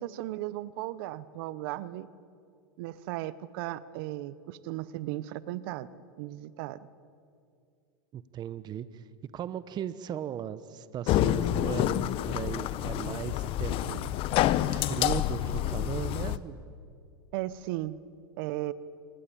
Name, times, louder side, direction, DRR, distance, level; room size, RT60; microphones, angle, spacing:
voice 1, 0.0-2.1 2.8-5.9 6.2-6.8 17.3-18.0 18.4-18.7, right 15 dB, 60° right, 16 dB, 1.0 m, -36 dB
voice 2, 8.1-9.1 9.3-14.1 14.7-16.6, right 9 dB, 35° right, 14 dB, 1.0 m, -37 dB
sound 1, 11.1-16.4, left 13 dB, 45° left, 1.0 m, -28 dB
26.5 x 20.5 x 8.7 m, 2.4 s
hypercardioid pair, 110°, 13 cm